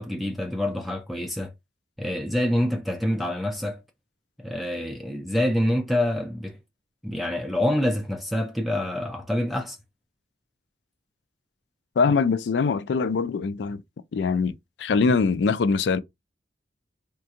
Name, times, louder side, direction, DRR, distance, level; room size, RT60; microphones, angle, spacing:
voice 1, 0.0-1.5 2.0-3.8 4.4-6.6 7.0-9.8, left 1 dB, ahead, 0.4 m, -26 dB
voice 2, 12.0-13.8 14.1-16.0, left 4 dB, 75° left, 0.4 m, -23 dB
3.6 x 2.3 x 2.8 m
head